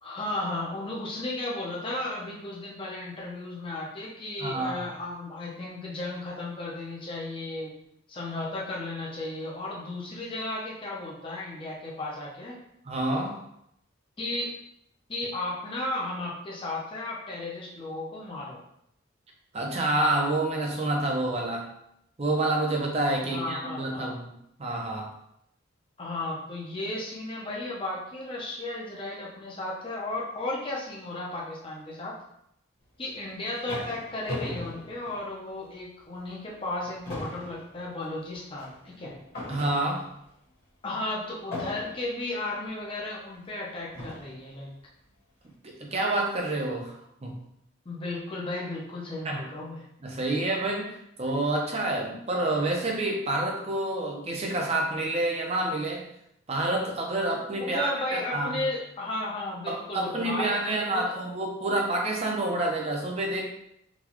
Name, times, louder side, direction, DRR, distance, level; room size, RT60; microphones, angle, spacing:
voice 1, 0.0-7.7 8.1-12.6 14.2-14.5 15.1-18.6 23.2-24.1 26.0-32.2 33.0-39.1 40.8-44.7 47.9-49.9 57.6-61.2, left 2 dB, 25° left, -4 dB, 0.6 m, -34 dB
voice 2, 4.4-4.8 12.9-13.4 19.5-21.7 22.2-25.1 39.5-40.0 45.6-46.9 47.2-47.4 49.2-49.4 50.0-56.0 56.5-58.6 59.7-63.4, right 2 dB, 30° right, 0 dB, 0.6 m, -28 dB
sound 1, 33.1-35.8 36.2-36.4 36.7-40.3 41.5-42.3 43.1-43.2 43.9-44.5, left 1 dB, 45° left, 1.3 m, -39 dB
3.9 x 2.3 x 2.9 m, 0.76 s
head